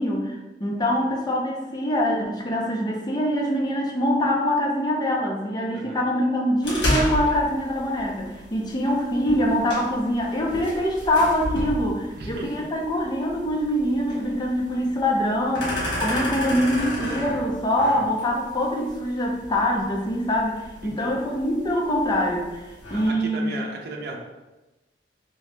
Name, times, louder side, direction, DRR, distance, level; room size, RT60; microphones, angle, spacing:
voice 1, 0.0-22.6 22.9-23.5, equal, 25° left, -1 dB, 0.6 m, -24 dB
sound 1, 6.6-23.1, equal, 80° left, 1.4 m, -33 dB
voice 2, 12.2-12.7 20.8-21.1 22.9-24.2, right 2 dB, 60° right, 0 dB, 0.6 m, -36 dB
3.1 x 2.8 x 3.2 m, 1.1 s
head